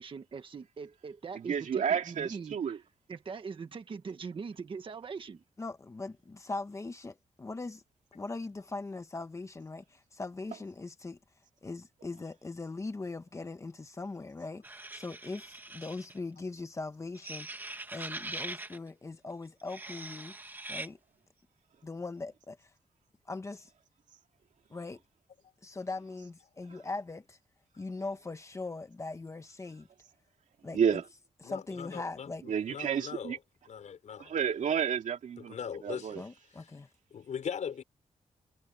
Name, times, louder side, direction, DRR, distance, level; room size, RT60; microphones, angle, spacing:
voice 1, 0.0-2.8 3.1-5.4, right 5 dB, 45° right, 1.6 m, -42 dB
voice 2, 1.3-2.8 30.7-31.0 32.5-33.4 34.2-35.5 35.8-36.2, right 7 dB, 80° right, 2.3 m, -30 dB
voice 3, 5.6-7.8 8.1-11.2 11.6-17.5 17.9-20.3 20.7-21.0 21.8-22.7 23.3-23.7 24.7-25.0 25.6-27.4 27.8-29.9 30.6-31.0 31.4-32.4 36.1-36.9, left 3 dB, 25° left, 1.2 m, -40 dB
sound 1, 14.6-16.2 17.1-18.8 19.6-20.9, right 2 dB, 15° right, 2.0 m, -42 dB
voice 4, 31.4-33.4 33.7-34.3 35.4-36.3 37.1-37.8, left 7 dB, 70° left, 5.4 m, -40 dB
wide cardioid pair, 170°, 13 cm